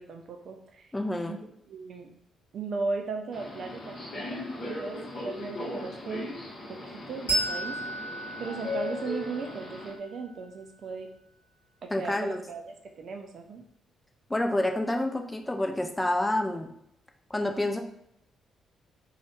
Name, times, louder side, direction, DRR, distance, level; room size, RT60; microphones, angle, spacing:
voice 1, 0.0-0.9 1.3-2.1 2.5-6.3 6.7-6.8 7.1-7.7 8.4-11.1 11.8-13.6, right 4 dB, 50° right, 4 dB, 0.5 m, -37 dB
voice 2, 0.9-1.4 11.9-12.4 14.3-16.7 17.3-17.8, left 1 dB, 15° left, 4 dB, 0.5 m, -28 dB
Subway metro underground, 3.3-9.9, left 2 dB, 45° left, 1.1 m, -38 dB
Bell, 7.3-10.4, right 1 dB, 85° left, 0.9 m, -34 dB
3.9 x 2.3 x 3.2 m, 0.74 s
figure-of-eight pair, 40°, 0 cm